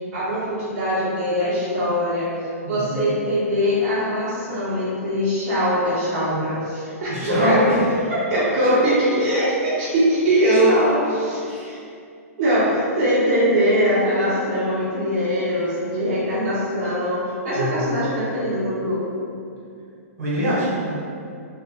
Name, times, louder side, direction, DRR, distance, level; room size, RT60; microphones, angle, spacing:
voice 1, 0.1-2.3 2.6-7.6 8.3-10.8 11.3-11.8 12.4-19.3, equal, 35° right, -13 dB, 0.9 m, -22 dB
voice 2, 2.6-3.1 7.1-7.8 8.7-8.8 10.7-11.1 11.5-11.7 17.5-18.0 20.2-20.9, equal, 65° right, -8 dB, 1.2 m, -23 dB
2.6 x 2.2 x 2.9 m, 2.4 s
hypercardioid pair, 160°, 8 cm